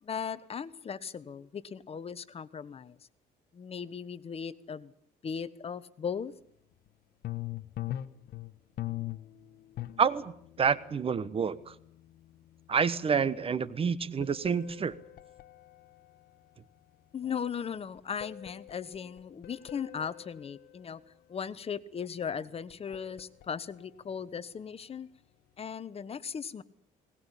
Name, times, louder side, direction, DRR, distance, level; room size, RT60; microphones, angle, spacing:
voice 1, 0.0-3.0 3.5-4.9 5.2-6.3 17.1-21.0 21.3-25.1 25.6-26.6, left 7 dB, 35° left, 16 dB, 1.2 m, -37 dB
sound 1, 6.9-7.0 7.2-16.8 18.0-20.8 22.5-23.7, left 14 dB, 65° left, 1.2 m, -43 dB
voice 2, 10.0-10.3 10.6-11.7 12.7-14.9, right 6 dB, 35° right, 17 dB, 1.2 m, -28 dB
20.5 x 19.0 x 10.0 m, 0.68 s
cardioid pair, 110°, 17 cm